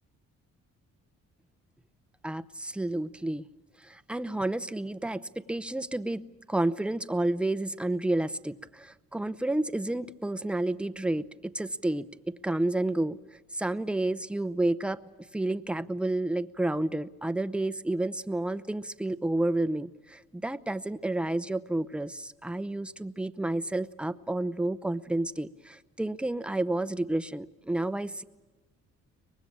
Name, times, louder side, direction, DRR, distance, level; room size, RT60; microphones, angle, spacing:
voice 1, 2.2-3.5 3.8-13.2 13.5-15.0 15.3-28.2, right 2 dB, 5° right, 14 dB, 0.7 m, -30 dB
24.0 x 20.0 x 8.7 m, 1.2 s
cardioid pair, 90°, 30 cm